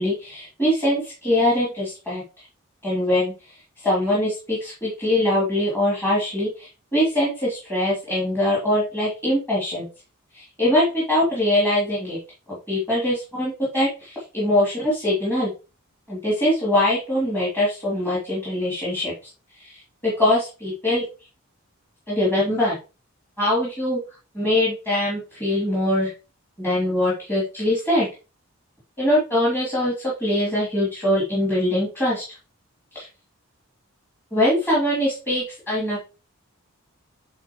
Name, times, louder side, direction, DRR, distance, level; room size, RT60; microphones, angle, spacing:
voice 1, 0.0-2.2 2.8-3.3 3.8-9.8 10.3-12.2 12.7-15.5 16.1-19.1 19.6-21.0 22.1-22.8 23.4-24.0 24.3-26.1 26.6-28.1 29.0-32.2 32.9-33.1 34.3-36.0, left 1 dB, 10° left, -8 dB, 3.0 m, -22 dB
9.5 x 4.3 x 3.1 m, 0.31 s
head